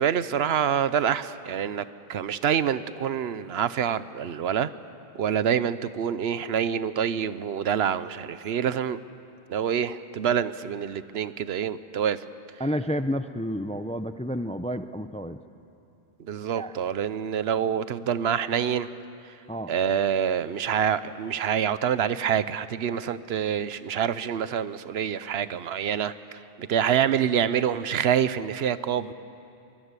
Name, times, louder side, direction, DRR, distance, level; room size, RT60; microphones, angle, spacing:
voice 1, 0.0-4.7 5.1-9.0 9.5-12.2 16.2-18.9 19.3-19.4 19.7-29.1, right 8 dB, 80° right, 15 dB, 1.0 m, -26 dB
voice 2, 12.6-15.4 16.6-16.7 19.5-19.7, equal, 10° left, 11 dB, 0.4 m, -30 dB
24.0 x 20.5 x 8.2 m, 2.7 s
omnidirectional pair, 1.0 m